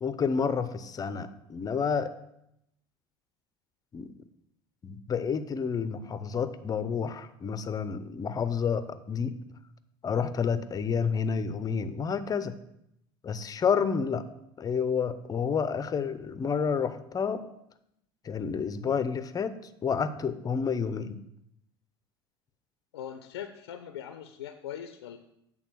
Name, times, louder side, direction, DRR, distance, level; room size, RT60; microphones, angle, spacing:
voice 1, 0.0-2.1 3.9-4.1 4.8-9.4 10.0-12.5 13.2-14.2 14.6-17.4 18.2-19.5 19.8-21.2, left 6 dB, 30° left, 13 dB, 0.6 m, -29 dB
voice 2, 22.9-25.2, left 9 dB, 90° left, 8 dB, 0.5 m, -41 dB
8.1 x 3.7 x 6.0 m, 0.79 s
hypercardioid pair, 85°, 13 cm